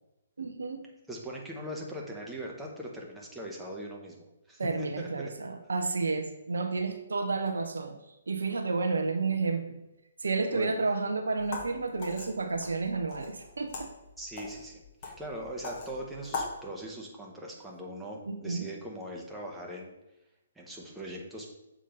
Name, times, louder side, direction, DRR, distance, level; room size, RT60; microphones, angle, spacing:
voice 1, 0.4-0.8 4.6-8.0 8.3-9.8 10.2-13.9 18.3-18.7, right 4 dB, 65° right, 6 dB, 0.7 m, -31 dB
voice 2, 1.1-5.3 10.5-10.7 14.2-19.9 20.5-21.5, right 1 dB, 5° right, -3 dB, 1.1 m, -40 dB
sound 1, 11.4-16.6, left 4 dB, 35° left, 1.6 m, -41 dB
6.7 x 3.7 x 5.2 m, 0.95 s
figure-of-eight pair, 130°, 0 cm